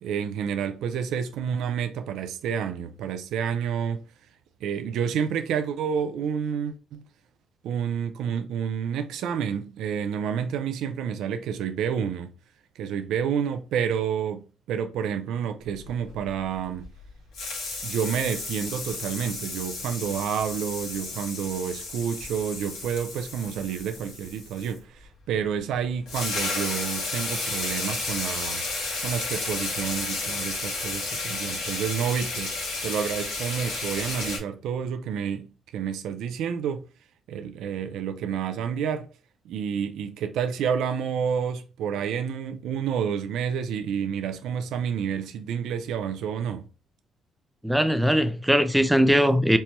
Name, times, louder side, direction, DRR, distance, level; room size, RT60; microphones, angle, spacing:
voice 1, 0.0-4.0 4.6-7.0 7.6-12.3 12.8-16.9 17.8-28.6 29.0-32.5 32.8-36.9 37.3-39.1 39.4-46.6, right 7 dB, 85° right, 0.4 m, -29 dB
sound 1, 15.8-17.1 17.3-24.8 25.7-25.8 26.1-34.4, left 3 dB, 85° left, 1.6 m, -32 dB
voice 2, 47.6-49.6, equal, 5° right, 0.4 m, -20 dB
4.2 x 2.2 x 3.0 m
cardioid pair, 90°, 0 cm